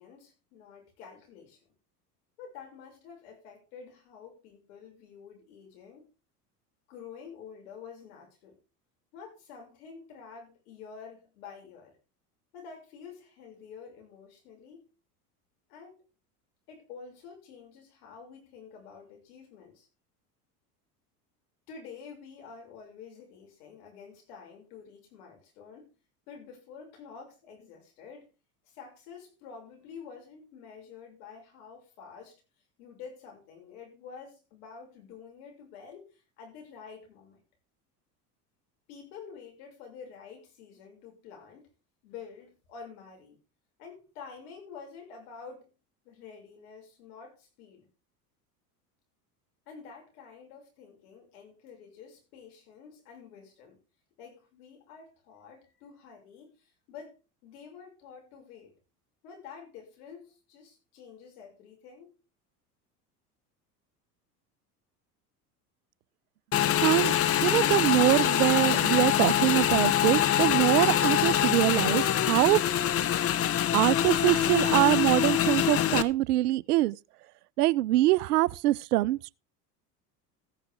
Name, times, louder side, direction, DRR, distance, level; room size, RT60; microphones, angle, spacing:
voice 1, 0.0-1.6 2.4-6.1 6.9-8.6 9.1-11.9 12.5-14.8 15.7-16.0 16.7-19.9 21.7-25.9 26.3-28.3 28.6-32.4 32.8-37.4 38.9-41.7 42.0-43.4 43.8-45.7 46.0-47.9 49.7-53.8 54.2-57.1 57.4-58.7 59.2-62.1, left 6 dB, 70° left, 6.4 m, -48 dB
Motorcycle / Engine, 66.5-76.0, left 11 dB, 30° left, 0.8 m, -25 dB
voice 2, 66.8-72.6 73.7-77.0 77.6-79.3, right 16 dB, 75° right, 0.6 m, -24 dB
15.0 x 9.4 x 3.7 m
hypercardioid pair, 80°, 47 cm